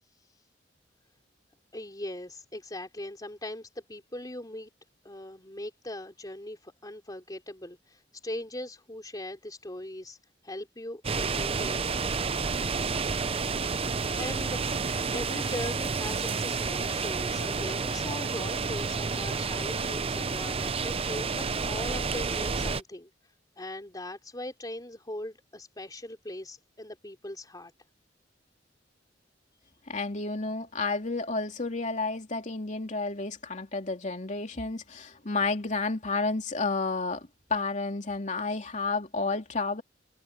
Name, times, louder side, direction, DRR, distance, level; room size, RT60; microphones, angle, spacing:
voice 1, 1.7-4.7 5.0-10.2 10.4-11.8 14.1-14.6 15.1-23.1 23.6-27.7, left 1 dB, 20° left, 3.6 m, -40 dB
sound 1, 11.0-22.8, right 4 dB, 30° right, 0.7 m, -30 dB
voice 2, 29.9-39.8, left 3 dB, 40° left, 2.9 m, -31 dB
head